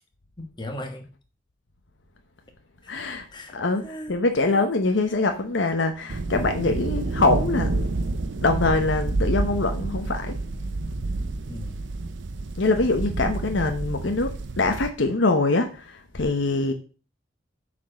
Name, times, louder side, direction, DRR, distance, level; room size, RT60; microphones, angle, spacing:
voice 1, 0.4-1.1 2.8-2.9 3.3-4.1 11.5-11.9, left 1 dB, 25° left, 1.3 m, -38 dB
voice 2, 2.9-3.3 3.5-7.9 8.4-10.4 12.5-16.7, left 3 dB, 85° left, 0.9 m, -24 dB
sound 1, 6.1-14.9, right 2 dB, 80° right, 0.6 m, -29 dB
7.3 x 4.4 x 6.3 m
head